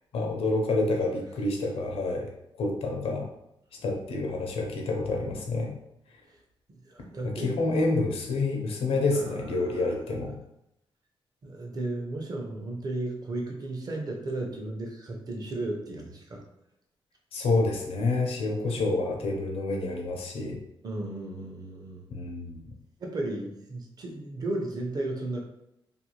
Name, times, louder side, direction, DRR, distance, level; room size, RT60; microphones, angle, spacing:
voice 1, 0.1-2.3 2.6-3.3 3.8-5.7 7.4-10.4 17.3-20.6 22.1-22.6, left 2 dB, 85° left, 1 dB, 0.6 m, -28 dB
voice 2, 6.8-7.6 9.1-10.0 11.4-16.4 20.8-22.0 23.0-25.4, right 2 dB, 40° right, 0 dB, 0.6 m, -34 dB
2.6 x 2.3 x 2.9 m, 0.81 s
wide cardioid pair, 130°, 10 cm